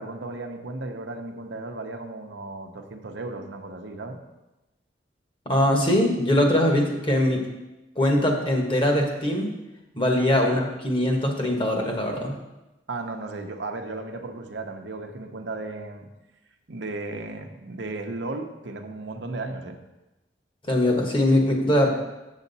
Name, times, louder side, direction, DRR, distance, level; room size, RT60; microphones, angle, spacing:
voice 1, 0.0-4.2 10.4-10.6 12.9-16.1 16.7-19.8, right 2 dB, 80° right, 4 dB, 0.8 m, -35 dB
voice 2, 5.4-7.4 8.0-9.5 9.9-12.3 20.7-21.9, left 1 dB, 30° left, 1 dB, 1.3 m, -22 dB
7.4 x 7.2 x 4.0 m, 1.0 s
head